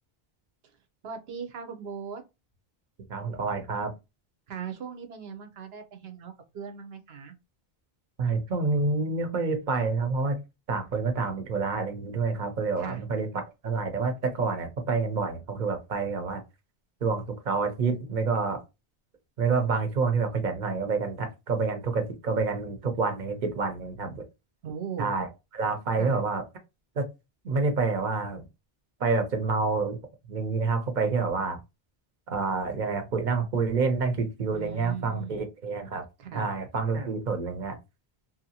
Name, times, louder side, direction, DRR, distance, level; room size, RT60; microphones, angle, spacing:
voice 1, 1.0-2.2 4.5-7.3 12.8-13.0 24.6-25.1 26.0-26.2 34.5-35.4 36.2-36.5, right 7 dB, 80° right, 0.9 m, -38 dB
voice 2, 3.1-3.9 8.2-10.4 10.7-13.3 13.6-16.4 17.0-18.6 19.4-24.2 25.0-25.3 25.5-26.4 27.0-27.1 27.4-28.4 29.0-30.0 30.3-31.6 32.3-36.0 36.3-37.8, right 4 dB, 50° right, 0.8 m, -28 dB
2.7 x 2.1 x 2.7 m
omnidirectional pair, 1.0 m